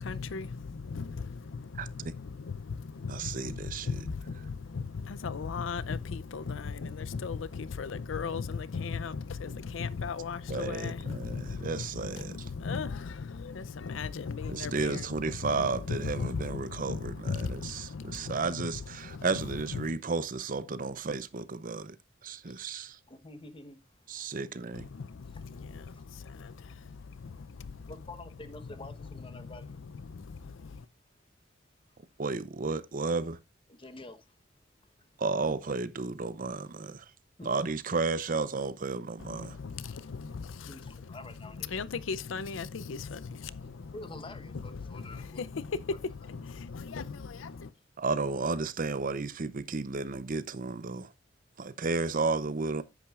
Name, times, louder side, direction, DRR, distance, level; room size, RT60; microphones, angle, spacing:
voice 1, 0.0-19.9 24.7-28.0 29.0-30.9 39.2-47.7, left 5 dB, 85° left, 0.5 m, -37 dB
voice 2, 1.7-2.1 3.1-3.9 10.5-12.4 14.5-22.0 22.2-23.0 24.1-24.9 32.2-33.4 35.2-37.1 37.4-39.6 48.0-51.1 51.6-52.8, right 4 dB, 45° right, 0.7 m, -33 dB
voice 3, 23.1-24.5 25.2-26.0 27.9-29.8 30.6-30.7 33.7-34.3 34.8-35.2 37.4-37.5 39.9-40.0 40.6-41.7 43.9-45.4, left 2 dB, 25° left, 1.0 m, -48 dB
10.5 x 8.6 x 2.4 m
head